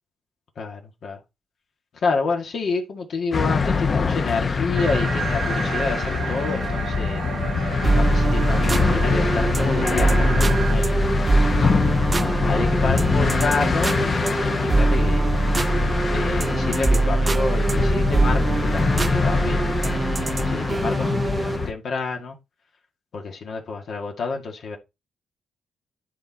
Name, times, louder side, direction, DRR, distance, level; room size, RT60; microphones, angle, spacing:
voice 1, 0.6-1.2 2.0-7.2 7.8-11.7 12.5-15.4 16.1-22.4 23.1-24.8, left 4 dB, 60° left, 1.9 m, -29 dB
sound 1, 3.3-21.7, left 4 dB, 35° left, 1.1 m, -24 dB
sound 2, 4.7-10.7, right 7 dB, 65° right, 1.3 m, -32 dB
sound 3, 7.8-21.7, right 2 dB, 25° right, 0.4 m, -23 dB
10.5 x 4.5 x 4.1 m
cardioid pair, 130°, 0 cm